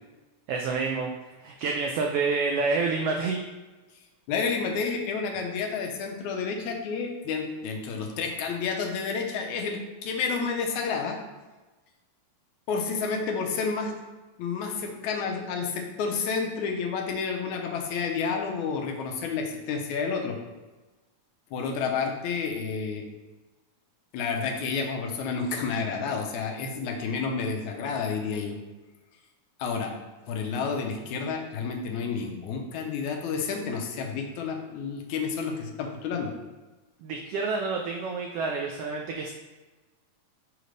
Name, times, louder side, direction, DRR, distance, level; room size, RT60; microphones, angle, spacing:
voice 1, 0.5-1.1 1.4-3.4 37.0-39.3, right 4 dB, 90° right, 1 dB, 1.3 m, -28 dB
voice 2, 4.3-11.2 12.7-13.9 14.4-20.4 21.5-23.1 24.1-28.6 29.6-29.9 30.3-36.3, left 5 dB, 85° left, 2 dB, 2.2 m, -30 dB
6.8 x 3.2 x 5.1 m, 1.2 s
omnidirectional pair, 3.3 m